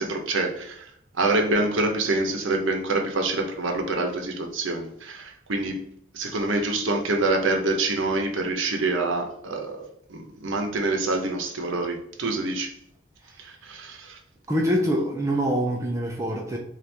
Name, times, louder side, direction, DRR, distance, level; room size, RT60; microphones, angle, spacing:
voice 1, 0.0-5.8 6.1-12.7 13.4-14.2, right 2 dB, 70° right, 3 dB, 0.7 m, -26 dB
voice 2, 14.5-16.6, equal, 15° right, -1 dB, 0.4 m, -24 dB
3.2 x 2.4 x 4.3 m, 0.73 s
head